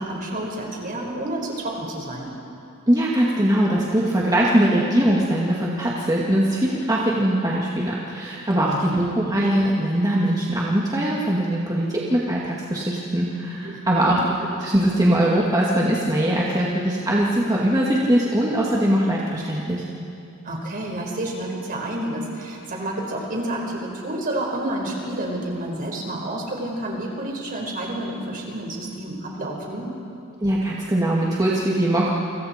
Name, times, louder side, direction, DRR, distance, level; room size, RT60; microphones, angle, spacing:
voice 1, 0.0-2.3 8.5-9.0 13.6-14.2 20.4-29.9, right 1 dB, 40° right, 0 dB, 4.7 m, -29 dB
voice 2, 2.9-14.2 14.6-19.8 30.4-32.1, right 1 dB, 15° right, -5 dB, 2.2 m, -21 dB
30.0 x 26.0 x 4.5 m, 2.6 s
head